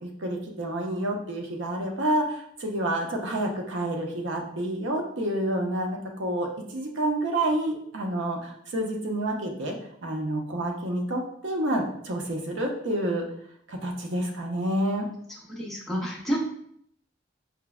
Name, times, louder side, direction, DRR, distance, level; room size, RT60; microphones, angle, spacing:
voice 1, 0.0-9.7 10.0-13.2 13.7-15.0, right 1 dB, 80° right, 1 dB, 0.6 m, -29 dB
voice 2, 15.5-16.4, equal, ahead, -4 dB, 0.5 m, -29 dB
4.5 x 2.0 x 2.3 m, 0.68 s
head